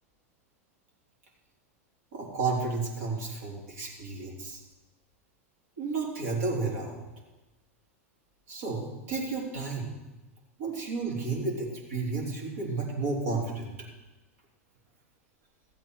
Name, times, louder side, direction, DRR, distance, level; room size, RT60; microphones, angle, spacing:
voice 1, 2.1-4.6 5.8-7.0 8.5-9.9 10.6-13.7, right 3 dB, 65° right, -1 dB, 3.5 m, -32 dB
14.5 x 8.5 x 4.7 m, 1.1 s
hypercardioid pair, 105°, 8 cm